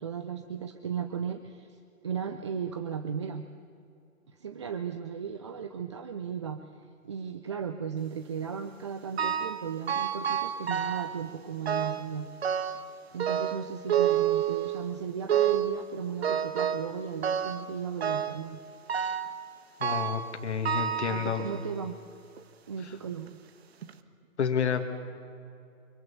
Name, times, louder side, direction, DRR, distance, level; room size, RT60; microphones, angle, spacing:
voice 1, 0.0-3.4 4.3-12.3 12.6-12.7 13.1-18.6 21.1-21.9 22.7-23.3, right 7 dB, 20° right, 8 dB, 0.5 m, -36 dB
sound 1, 9.2-9.6 9.9-11.2 11.6-12.1 12.4-12.9 13.2-14.9 15.3-15.8 16.2-16.9 17.2-17.7 18.0-18.4 18.9-19.3 19.8-20.3 20.6-21.7 22.4-22.5 23.3-23.4 23.8-23.9, right 9 dB, 50° right, 1.4 m, -29 dB
voice 2, 19.8-21.4 24.4-24.9, left 7 dB, 55° left, 7 dB, 2.2 m, -29 dB
24.5 x 24.0 x 7.1 m, 2.7 s
figure-of-eight pair, 140°, 41 cm